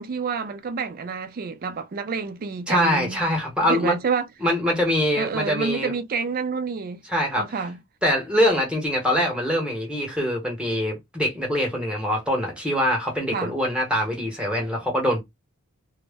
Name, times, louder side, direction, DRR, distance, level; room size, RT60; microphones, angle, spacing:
voice 1, 0.0-3.3 3.7-4.3 5.1-7.0 7.3-7.8 13.3-13.6, right 5 dB, 40° right, 0.3 m, -28 dB
voice 2, 2.7-3.9 4.4-5.9 7.1-7.4 8.0-15.2, equal, 5° right, 0.8 m, -23 dB
2.1 x 2.0 x 3.3 m
head